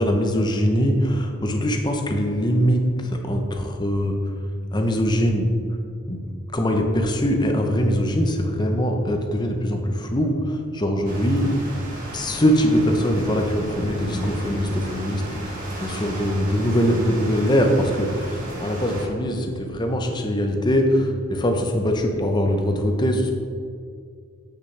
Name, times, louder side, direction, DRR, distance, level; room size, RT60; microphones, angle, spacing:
voice 1, 0.0-4.2 4.7-5.5 6.1-6.2 6.5-11.5 12.1-23.3, equal, 20° left, 3 dB, 0.6 m, -22 dB
sound 1, 11.0-19.1, right 1 dB, 40° right, 1.4 m, -34 dB
8.0 x 6.4 x 3.3 m, 2.3 s
head